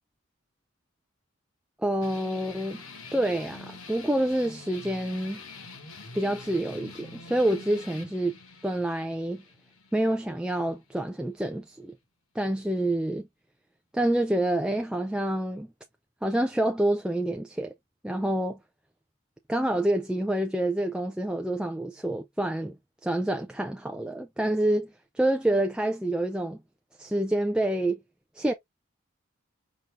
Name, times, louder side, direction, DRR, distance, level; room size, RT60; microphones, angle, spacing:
voice 1, 1.8-2.8 3.1-5.4 6.1-8.4 8.6-9.4 9.9-11.9 12.3-13.3 13.9-15.7 16.2-17.7 18.0-18.6 19.5-26.6 27.0-28.0 28.3-28.5, right 1 dB, 5° right, 0.3 m, -27 dB
sound 1, 2.0-11.1, left 3 dB, 80° left, 1.3 m, -46 dB
5.2 x 2.7 x 3.3 m
head